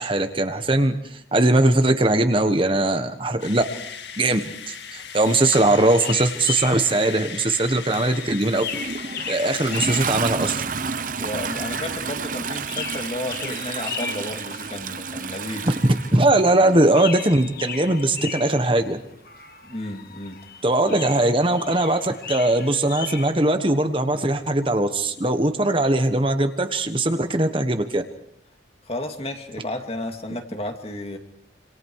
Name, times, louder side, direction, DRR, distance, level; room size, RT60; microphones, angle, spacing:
voice 1, 0.0-3.6 4.2-8.6 9.3-10.6 15.6-15.7 16.1-19.0 20.6-28.0, right 2 dB, 30° right, 7 dB, 1.3 m, -20 dB
sound 1, 3.4-10.1, left 7 dB, 70° left, 1.8 m, -37 dB
sound 2, 5.2-7.3 7.9-11.0 11.5-16.6 16.9-18.9 19.2-23.3, left 7 dB, 50° left, 1.9 m, -37 dB
Toilet flush, 8.5-16.9 18.0-18.1, right 5 dB, 45° right, 0.9 m, -31 dB
voice 2, 11.2-15.7 19.6-20.4 20.9-21.0 28.9-31.2, left 1 dB, 30° left, 5 dB, 2.4 m, -32 dB
27.5 x 27.0 x 4.8 m, 0.74 s
head